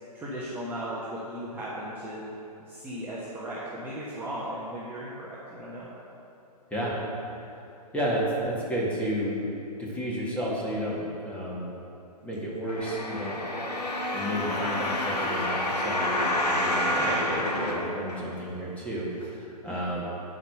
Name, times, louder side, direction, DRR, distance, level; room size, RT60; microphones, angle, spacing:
voice 1, 0.1-2.2 2.7-5.9 19.6-19.8, right 1 dB, 10° right, -8 dB, 1.2 m, -36 dB
voice 2, 7.9-9.3 9.8-11.7 12.2-13.3 14.1-20.0, equal, 5° left, -5 dB, 2.0 m, -31 dB
sound 1, 12.7-18.6 19.2-19.3, left 1 dB, 80° left, 1.9 m, -28 dB
11.0 x 5.1 x 6.8 m, 2.8 s
figure-of-eight pair, 130°, 21 cm